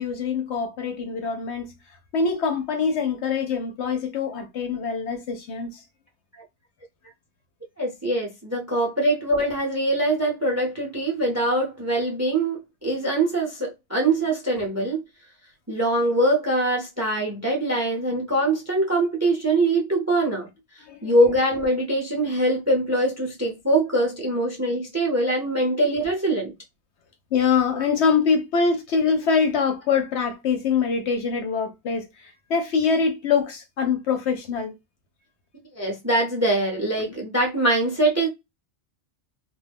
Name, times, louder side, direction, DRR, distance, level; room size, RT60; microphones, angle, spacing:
voice 1, 0.0-1.7 2.1-5.8 20.8-21.1 27.3-34.8, left 5 dB, 65° left, 0.8 m, -24 dB
voice 2, 7.8-15.0 15.7-20.5 20.8-26.5 27.7-27.8 35.7-38.3, right 1 dB, 20° right, 0.4 m, -23 dB
2.2 x 2.1 x 3.4 m
omnidirectional pair, 1.3 m